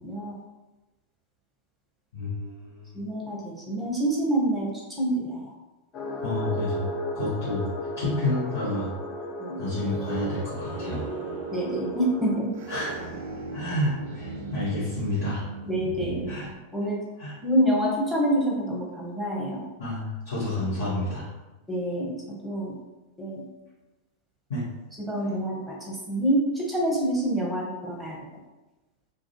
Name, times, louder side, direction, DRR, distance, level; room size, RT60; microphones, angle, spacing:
voice 1, 0.0-0.4 2.9-4.7 5.0-5.5 9.4-9.6 11.5-12.5 15.6-16.3 16.7-17.0 17.4-19.7 21.7-22.8 23.2-23.5 25.1-28.2, right 1 dB, 5° right, -3 dB, 0.7 m, -27 dB
voice 2, 2.1-2.9 6.2-7.7 8.0-8.9 9.6-11.0 12.7-13.0 13.5-15.4 16.3-16.5 17.2-17.3 19.8-21.3 24.5-24.6, left 1 dB, 60° left, -11 dB, 0.9 m, -29 dB
sound 1, 5.9-12.4, left 1 dB, 35° left, 0.4 m, -35 dB
sound 2, 9.9-16.4, right 3 dB, 55° right, 0.4 m, -37 dB
2.3 x 2.1 x 2.9 m, 1.1 s
figure-of-eight pair, 90°, 0 cm